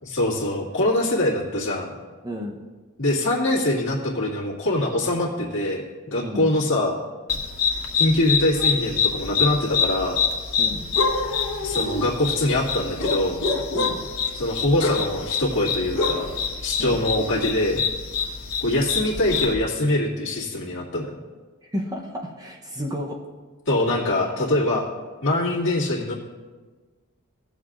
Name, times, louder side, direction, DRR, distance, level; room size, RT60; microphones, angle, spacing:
voice 1, 0.0-1.9 3.0-6.9 7.9-10.2 11.6-13.4 14.3-16.3 16.6-17.8 18.6-21.2 23.7-24.9 25.2-26.1, left 1 dB, 60° left, -5 dB, 2.0 m, -23 dB
voice 2, 2.2-2.6 6.2-6.5 10.6-10.9 13.7-14.0 16.8-17.0 21.6-23.2, equal, 20° right, 0 dB, 0.8 m, -32 dB
sound 1, 7.3-19.5, left 5 dB, 80° left, 1.3 m, -26 dB
18.0 x 7.0 x 2.5 m, 1.3 s
head